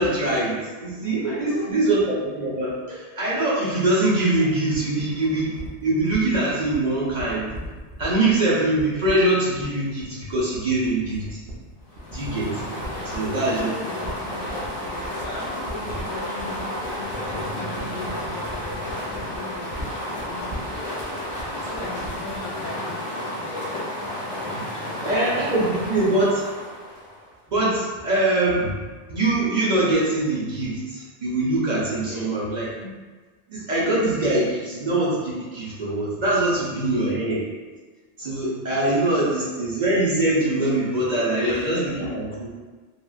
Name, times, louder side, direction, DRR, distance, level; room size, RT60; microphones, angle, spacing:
voice 1, 0.0-2.7 3.2-5.5 5.8-7.5 8.0-11.4 12.1-12.6 13.0-13.7 25.0-26.4 27.5-28.7 29.1-32.9 33.5-37.4 38.2-42.5, right 2 dB, 50° right, -7 dB, 0.6 m, -23 dB
voice 2, 1.2-1.9 13.0-24.3 24.7-25.3 25.7-26.1 28.6-28.7 32.0-32.3 38.8-39.5 41.3-42.1, left 2 dB, 70° left, -3 dB, 1.0 m, -39 dB
sound 1, 4.7-22.5, right 1 dB, 80° right, 0.9 m, -39 dB
sound 2, 11.9-27.3, left 1 dB, 30° left, 1.2 m, -32 dB
3.1 x 2.3 x 2.3 m, 1.3 s
omnidirectional pair, 1.2 m